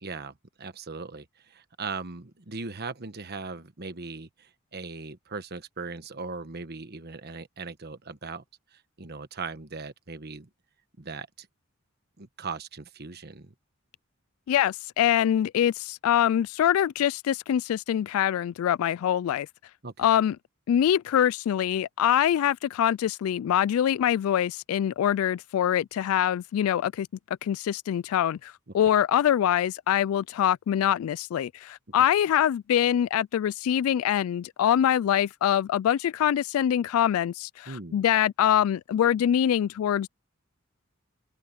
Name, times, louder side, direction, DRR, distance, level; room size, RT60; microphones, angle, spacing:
voice 1, 0.0-8.4 8.7-10.5 11.0-11.5 12.2-13.5 19.8-20.1 37.7-38.0, right 4 dB, 50° right, 1.3 m, -39 dB
voice 2, 14.5-19.5 20.0-20.4 20.7-27.1 27.4-40.1, left 10 dB, 85° left, 0.3 m, -24 dB
open air
head